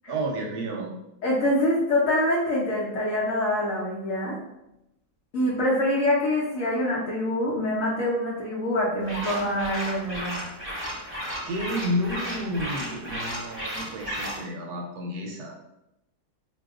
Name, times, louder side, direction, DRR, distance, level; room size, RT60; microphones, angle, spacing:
voice 1, 0.1-0.9 11.4-15.5, equal, 75° right, 1 dB, 1.1 m, -31 dB
voice 2, 1.2-4.4 5.3-10.4, left 1 dB, 65° left, -5 dB, 1.0 m, -25 dB
sound 1, 9.0-14.4, equal, 10° right, 0.9 m, -34 dB
2.7 x 2.3 x 3.5 m, 0.87 s
omnidirectional pair, 1.7 m